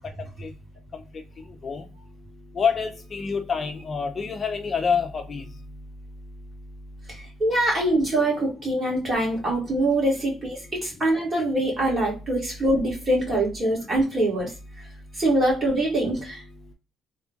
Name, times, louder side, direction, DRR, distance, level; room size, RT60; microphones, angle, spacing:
voice 1, 2.5-5.5, left 6 dB, 35° left, 5 dB, 0.5 m, -26 dB
voice 2, 7.1-14.5 15.2-16.4, right 1 dB, 30° right, -3 dB, 2.0 m, -24 dB
3.5 x 2.5 x 3.5 m, 0.31 s
cardioid pair, 115°, 0 cm